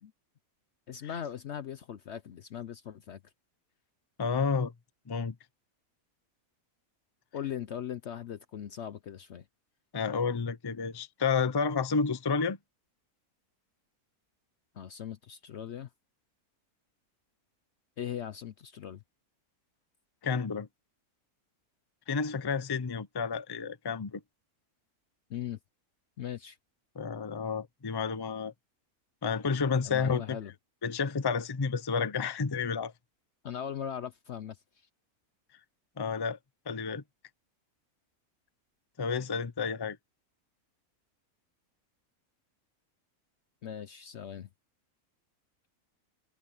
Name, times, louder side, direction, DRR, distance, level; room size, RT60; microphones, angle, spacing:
voice 1, 0.9-3.2 7.3-9.4 14.7-15.9 18.0-19.0 25.3-25.6 26.2-26.6 29.8-30.5 33.4-34.6 43.6-44.5, left 9 dB, 60° left, 0.8 m, -39 dB
voice 2, 4.2-4.7 5.1-5.3 9.9-12.6 20.2-20.7 22.1-24.2 26.9-28.5 29.2-30.4 30.8-32.9 36.0-36.4 36.7-37.0 39.0-40.0, left 5 dB, 25° left, 0.6 m, -30 dB
omnidirectional pair, 1.6 m